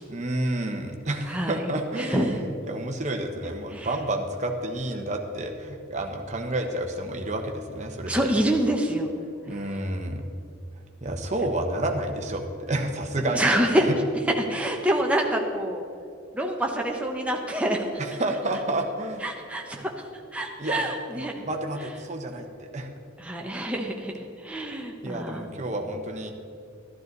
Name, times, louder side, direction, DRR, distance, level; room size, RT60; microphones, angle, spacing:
voice 1, 0.1-8.3 9.5-10.2 11.0-13.5 13.8-13.9 18.0-19.3 19.8-19.9 20.6-20.9 21.1-22.9 25.0-26.3, right 1 dB, 35° right, 3 dB, 1.1 m, -30 dB
voice 2, 1.3-1.6 2.0-2.3 3.7-3.9 8.1-9.2 13.3-13.9 14.4-15.8 16.3-17.9 19.2-19.9 20.3-21.4 23.2-25.5, right 1 dB, 5° right, 0 dB, 1.1 m, -26 dB
12.5 x 12.5 x 4.0 m, 2.5 s
head